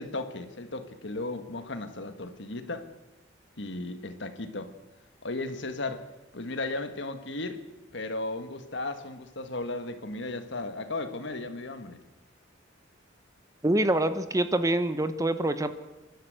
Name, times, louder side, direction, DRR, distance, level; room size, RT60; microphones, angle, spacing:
voice 1, 0.0-2.9 3.6-4.7 5.2-6.0 6.3-7.6 7.9-12.0, left 2 dB, 65° left, 8 dB, 1.7 m, -35 dB
voice 2, 13.6-15.7, right 1 dB, 15° right, 11 dB, 0.9 m, -25 dB
28.0 x 12.0 x 8.0 m, 1.1 s
head